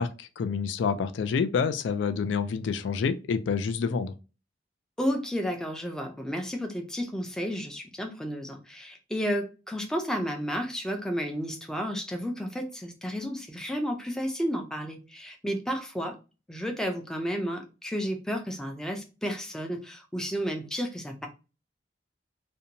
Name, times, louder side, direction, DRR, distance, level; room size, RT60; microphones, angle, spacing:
voice 1, 0.0-4.1, left 5 dB, 85° left, 0.3 m, -28 dB
voice 2, 5.0-16.2 16.5-21.3, equal, 5° left, 0.4 m, -32 dB
2.6 x 2.1 x 2.8 m
head